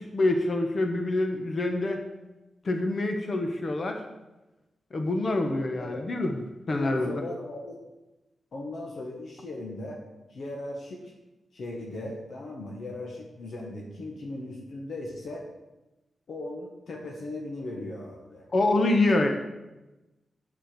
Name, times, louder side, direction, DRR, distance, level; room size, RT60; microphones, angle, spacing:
voice 1, 0.0-2.0 2.6-4.0 4.9-6.3 6.7-7.2 18.5-19.3, left 2 dB, 50° left, 4 dB, 1.3 m, -26 dB
voice 2, 6.6-7.8 8.5-10.0 10.3-11.1 11.5-15.4 16.3-18.4, left 2 dB, 70° left, -1 dB, 1.7 m, -38 dB
7.6 x 7.5 x 6.8 m, 1.0 s
cardioid pair, 85°, 0 cm